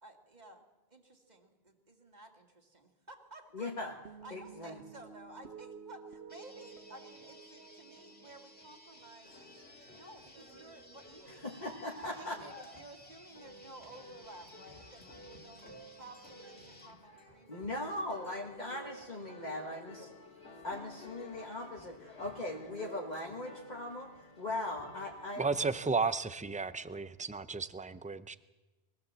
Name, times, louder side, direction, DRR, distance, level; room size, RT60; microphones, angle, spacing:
voice 1, 0.0-3.7 4.2-11.4 12.2-15.6 16.0-18.1 19.5-20.1, right 2 dB, 40° right, 3 dB, 2.2 m, -54 dB
voice 2, 3.5-4.0 4.3-4.8 11.3-12.4 17.5-20.1 20.6-25.7, left 2 dB, 45° left, -2 dB, 1.9 m, -40 dB
sound 1, 4.1-10.6, right 6 dB, 80° right, 1.4 m, -53 dB
sound 2, 6.3-17.0, left 1 dB, 10° left, 2.3 m, -58 dB
sound 3, 9.2-25.9, left 1 dB, 75° left, 2.7 m, -53 dB
voice 3, 25.4-28.4, right 4 dB, 10° right, 13 dB, 0.4 m, -33 dB
22.5 x 15.5 x 7.5 m, 1.1 s
omnidirectional pair, 1.1 m